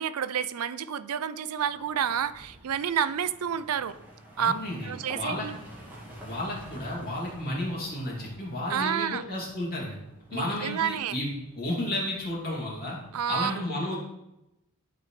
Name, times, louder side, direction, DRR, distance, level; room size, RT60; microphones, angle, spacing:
voice 1, 0.0-4.0 4.4-4.5 4.8-5.6 8.7-9.2 10.3-11.2 13.1-13.5, right 8 dB, 70° right, 14 dB, 0.4 m, -29 dB
sound 1, 1.6-13.4, equal, 10° right, 2.0 m, -50 dB
voice 2, 4.4-5.5 6.2-10.0 10.3-11.3 11.5-13.0 13.3-14.0, left 1 dB, 45° left, -4 dB, 2.6 m, -32 dB
11.5 x 5.0 x 3.3 m, 0.90 s
head